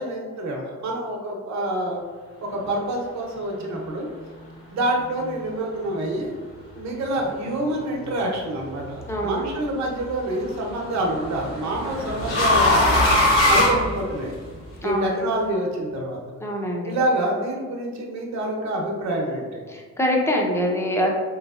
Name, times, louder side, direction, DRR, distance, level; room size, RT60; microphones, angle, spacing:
voice 1, 0.0-2.0 2.4-4.1 4.7-6.3 6.7-13.0 13.4-14.3 14.8-16.4 16.9-19.6, right 1 dB, 65° right, 0 dB, 0.9 m, -27 dB
sound 1, 8.6-9.1 10.6-14.5, left 1 dB, 45° left, 1.4 m, -21 dB
voice 2, 9.1-9.4 14.8-15.1 16.4-17.0 19.7-21.1, equal, 10° left, 0 dB, 0.6 m, -24 dB
3.3 x 3.1 x 2.4 m, 1.5 s
cardioid pair, 90°, 30 cm